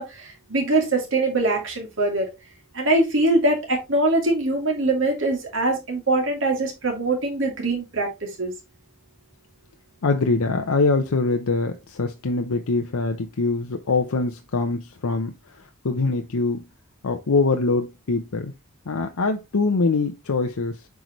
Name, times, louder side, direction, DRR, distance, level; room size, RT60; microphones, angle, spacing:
voice 1, 0.0-2.3 2.7-8.1 8.4-8.5, right 2 dB, 60° right, 2.7 m, -22 dB
voice 2, 10.0-16.6 17.0-18.5 18.9-20.8, left 3 dB, 85° left, 0.7 m, -23 dB
8.0 x 4.8 x 3.1 m
head